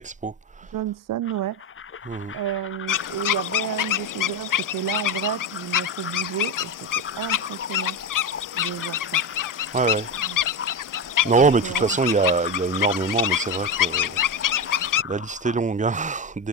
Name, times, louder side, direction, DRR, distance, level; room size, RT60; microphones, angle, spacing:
voice 1, 0.0-0.7 2.0-2.4 9.7-10.1 11.2-16.5, right 4 dB, 25° right, 1.4 m, -24 dB
voice 2, 0.7-1.6 2.3-8.0 8.6-9.2 10.2-10.4 11.6-12.3, right 13 dB, 90° right, 1.4 m, -31 dB
sound 1, 1.2-15.6, left 7 dB, 40° left, 1.1 m, -38 dB
sound 2, 2.9-15.0, left 12 dB, 80° left, 1.3 m, -27 dB
cardioid pair, 100°, 32 cm